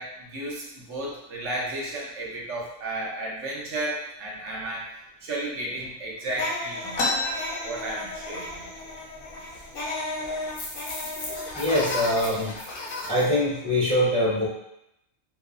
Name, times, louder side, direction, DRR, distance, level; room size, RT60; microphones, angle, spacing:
voice 1, 0.0-4.9 5.2-7.0 7.6-8.7, right 1 dB, 70° right, -4 dB, 1.0 m, -33 dB
sound 1, 6.3-13.2, left 2 dB, 55° left, 0.7 m, -34 dB
sound 2, 6.9-8.6 8.9-9.0 9.3-9.9 10.5-10.6 11.3-11.5 12.0-12.4, left 2 dB, 85° left, 1.0 m, -30 dB
voice 2, 11.6-12.5 13.1-14.5, left 1 dB, 10° left, -9 dB, 0.3 m, -23 dB
3.0 x 2.0 x 2.4 m, 0.81 s
omnidirectional pair, 1.3 m